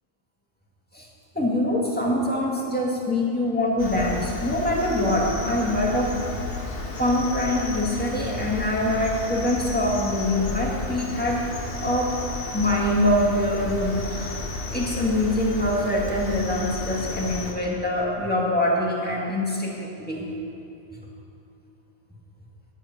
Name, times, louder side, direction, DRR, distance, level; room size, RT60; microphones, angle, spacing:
voice 1, 1.3-6.1 7.0-11.4 11.7-12.1 12.5-14.4 14.7-20.3, left 1 dB, 5° left, -4 dB, 1.9 m, -24 dB
Cricket, 3.8-17.5, left 2 dB, 60° left, 1.5 m, -32 dB
10.5 x 10.0 x 6.0 m, 2.8 s
omnidirectional pair, 1.3 m